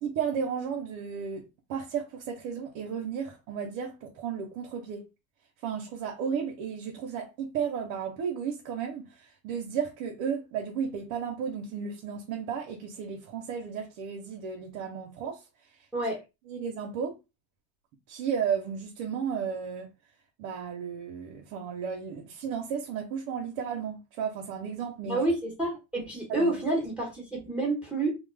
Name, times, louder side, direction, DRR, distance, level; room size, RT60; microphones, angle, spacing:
voice 1, 0.0-5.0 5.6-15.5 15.7-15.9 16.5-17.2 18.1-19.9 20.4-25.2 26.3-26.5, right 7 dB, 85° right, 0.7 m, -34 dB
voice 2, 25.1-28.2, right 2 dB, 5° right, 1.1 m, -29 dB
2.4 x 2.0 x 3.2 m
supercardioid pair, 105°, 47 cm